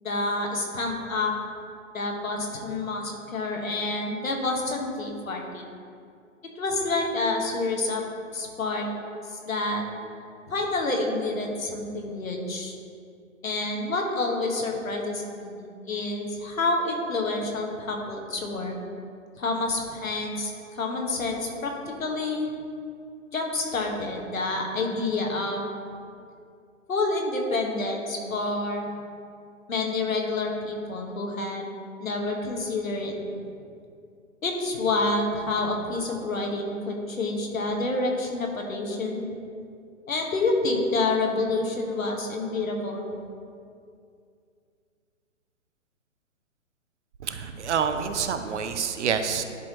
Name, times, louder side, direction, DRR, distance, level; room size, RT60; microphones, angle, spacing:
voice 1, 0.0-1.3 1.9-5.7 6.5-8.0 8.3-8.9 9.3-9.8 10.5-12.8 13.4-15.6 15.8-18.8 19.4-22.5 23.3-25.6 26.9-28.9 29.7-31.7 32.0-33.1 34.4-39.3 40.1-43.1, left 2 dB, 85° left, 1 dB, 1.4 m, -28 dB
voice 2, 47.2-49.4, right 7 dB, 60° right, 8 dB, 0.7 m, -27 dB
10.5 x 4.4 x 2.9 m, 2.3 s
hypercardioid pair, 135°, 40 cm